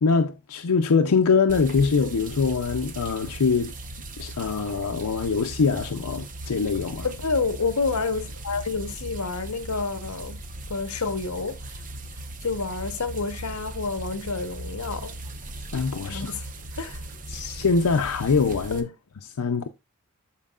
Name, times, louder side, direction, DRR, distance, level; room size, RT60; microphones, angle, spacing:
voice 1, 0.0-3.7 4.2-7.1 15.7-16.3 17.3-18.9 19.4-19.7, left 5 dB, 90° left, 0.6 m, -23 dB
sound 1, 1.5-18.8, right 2 dB, 35° right, 0.9 m, -38 dB
voice 2, 7.0-10.4 10.7-11.6 12.4-15.2 16.0-17.0 18.7-18.9, left 4 dB, 70° left, 1.0 m, -29 dB
12.5 x 4.5 x 2.4 m
head